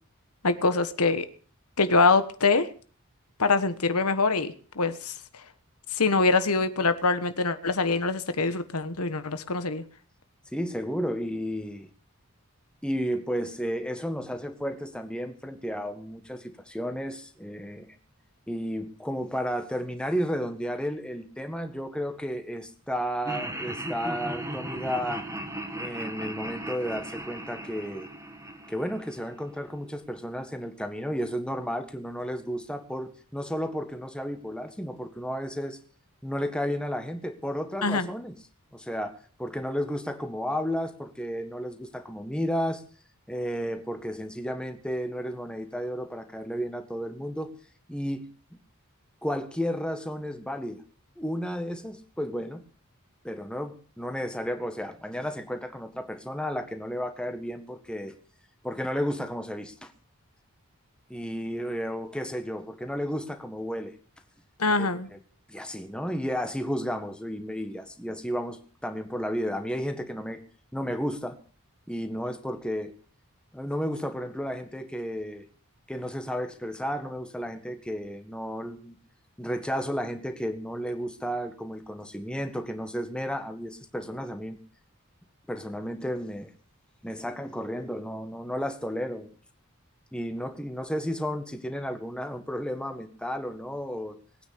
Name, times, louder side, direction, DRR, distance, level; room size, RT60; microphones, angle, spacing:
voice 1, 0.4-1.3 1.8-2.7 3.4-5.1 5.9-9.8 37.8-38.1 64.6-65.1, left 3 dB, 85° left, 11 dB, 1.4 m, -24 dB
voice 2, 10.5-11.9 12.8-17.9 18.5-25.2 25.8-28.1 28.7-35.8 36.2-38.3 38.7-42.8 43.3-47.5 47.9-48.2 49.2-50.8 51.2-52.6 53.2-58.1 58.6-59.9 61.1-63.9 64.8-65.2 65.5-70.4 70.7-71.4 71.9-72.9 73.5-75.5 75.9-78.9 79.4-84.6 85.5-86.5 87.0-89.3 90.1-94.2, equal, 5° left, 7 dB, 1.6 m, -32 dB
Laughter, 23.3-29.4, right 1 dB, 15° right, 2.4 m, -37 dB
20.5 x 9.4 x 7.0 m, 0.43 s
head